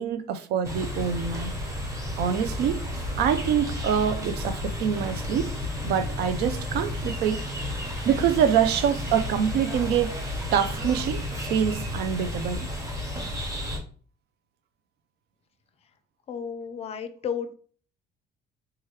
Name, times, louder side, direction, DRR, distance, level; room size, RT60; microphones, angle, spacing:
voice 1, 0.0-1.6 2.2-2.8 3.2-5.5 5.8-7.5 8.0-10.2 10.5-11.2 11.5-12.7, right 8 dB, 75° right, 0.4 m, -25 dB
sound 1, 0.6-13.8, left 1 dB, 20° right, 0.9 m, -32 dB
voice 2, 16.3-17.5, left 7 dB, 40° left, 0.4 m, -32 dB
3.0 x 2.3 x 3.1 m
cardioid pair, 110°, 17 cm